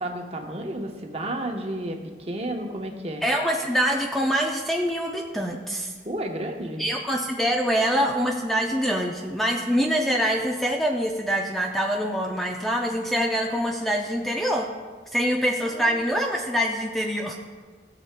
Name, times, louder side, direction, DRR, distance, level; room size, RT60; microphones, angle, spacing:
voice 1, 0.0-3.2 6.0-6.8 15.6-16.0, right 1 dB, 35° right, 2 dB, 0.9 m, -32 dB
voice 2, 3.2-5.9 6.8-14.7 15.1-17.3, equal, ahead, 0 dB, 0.4 m, -25 dB
16.5 x 6.9 x 2.2 m, 1.5 s
head